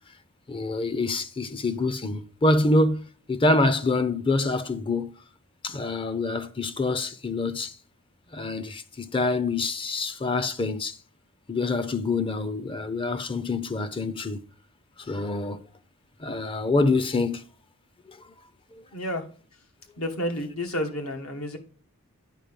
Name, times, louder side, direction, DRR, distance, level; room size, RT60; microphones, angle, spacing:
voice 1, 0.5-5.2 5.6-7.8 8.3-11.0 11.5-14.4 15.0-15.7 16.2-17.5 18.1-18.2 18.7-18.8, left 2 dB, 25° left, 0.6 m, -26 dB
voice 2, 18.9-19.2 20.0-21.6, left 1 dB, 70° left, 1.6 m, -30 dB
9.2 x 4.7 x 5.2 m
head